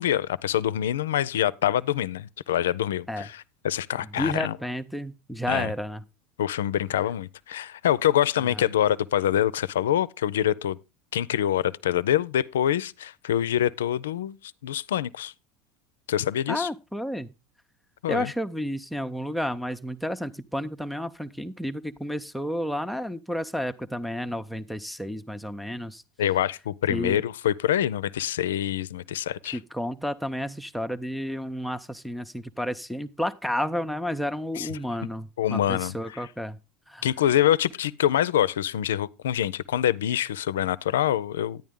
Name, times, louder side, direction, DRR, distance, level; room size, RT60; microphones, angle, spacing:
voice 1, 0.0-4.6 5.5-5.7 6.4-10.8 11.1-15.3 16.1-16.7 18.0-18.3 26.2-29.6 34.6-34.7 35.4-36.3 37.0-41.6, left 11 dB, 90° left, 0.4 m, -25 dB
voice 2, 4.2-6.0 8.5-8.7 16.5-17.3 18.1-26.0 26.9-27.2 29.4-36.6 36.9-37.0, equal, ahead, 0.6 m, -31 dB
10.5 x 9.2 x 3.6 m
hypercardioid pair, 95°, 0 cm